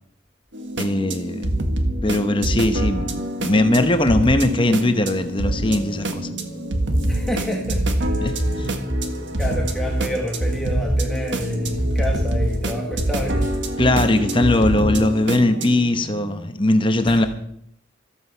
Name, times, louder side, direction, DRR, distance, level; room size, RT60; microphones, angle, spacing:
sound 1, 0.5-15.8, right 1 dB, 65° right, 1.6 m, -26 dB
voice 1, 0.8-1.6 2.0-6.3 8.2-8.7 13.8-17.3, left 1 dB, 25° left, 8 dB, 1.0 m, -20 dB
sound 2, 5.4-16.5, left 2 dB, 45° left, 1.9 m, -42 dB
sound 3, 6.9-14.9, right 1 dB, 80° right, 3.0 m, -26 dB
voice 2, 7.0-8.2 9.4-13.6 17.0-17.3, equal, ahead, -2 dB, 1.7 m, -28 dB
14.0 x 13.5 x 5.7 m, 0.70 s
head